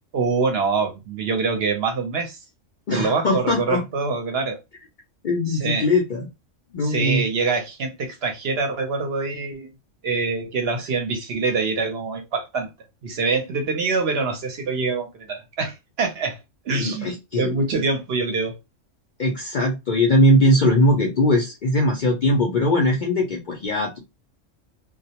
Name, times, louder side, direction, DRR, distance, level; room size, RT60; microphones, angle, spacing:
voice 1, 0.1-2.4 2.9-4.6 5.5-5.9 6.8-9.7 10.0-12.7 13.0-16.4 16.7-18.6, right 4 dB, 60° right, 0.8 m, -25 dB
voice 2, 2.9-3.8 5.2-6.3 6.7-7.2 16.7-17.5 19.2-24.0, left 1 dB, 55° left, 0.5 m, -20 dB
2.3 x 2.0 x 2.7 m
omnidirectional pair, 1.3 m